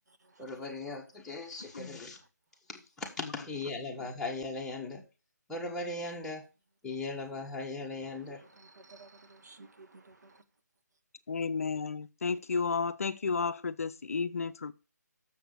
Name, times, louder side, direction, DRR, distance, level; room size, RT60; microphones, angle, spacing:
voice 1, 0.4-2.2 2.7-5.0 5.5-6.4 6.8-8.4, left 3 dB, 5° left, 1.4 m, -38 dB
voice 2, 8.2-10.4, right 3 dB, 65° right, 1.3 m, -54 dB
voice 3, 11.3-14.7, left 5 dB, 55° left, 0.5 m, -32 dB
7.0 x 5.9 x 6.6 m
figure-of-eight pair, 150°, 10 cm